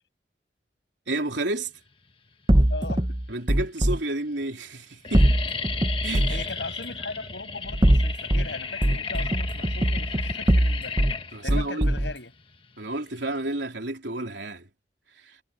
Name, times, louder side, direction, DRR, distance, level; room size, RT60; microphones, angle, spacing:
voice 1, 1.1-1.7 3.3-5.3 6.0-6.5 11.3-11.9 12.8-14.7 15.2-15.4, right 2 dB, 90° right, 3.5 m, -31 dB
sound 1, 2.5-3.0 3.7-3.8 4.1-4.4 4.7-13.6, left 5 dB, 30° left, 1.4 m, -34 dB
sound 2, 2.5-4.0 5.1-6.5 7.6-8.5 8.8-11.2 11.5-12.1, right 1 dB, 25° right, 1.0 m, -22 dB
voice 2, 2.7-3.2 6.3-11.0 11.4-12.3, left 3 dB, 80° left, 7.4 m, -38 dB
head